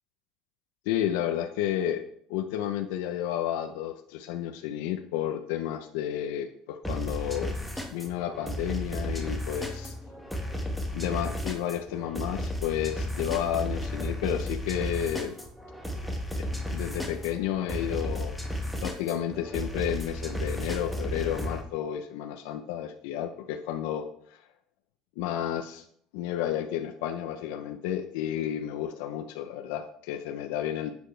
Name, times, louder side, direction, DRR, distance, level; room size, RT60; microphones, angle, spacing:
voice 1, 0.9-7.5 7.9-10.0 10.9-15.4 16.7-18.4 18.8-24.5 25.2-25.8 26.1-30.9, left 10 dB, 80° left, 5 dB, 0.8 m, -31 dB
sound 1, 6.8-21.6, equal, ahead, 1.6 m, -34 dB
11.5 x 8.3 x 3.4 m, 0.65 s
cardioid pair, 140°, 0 cm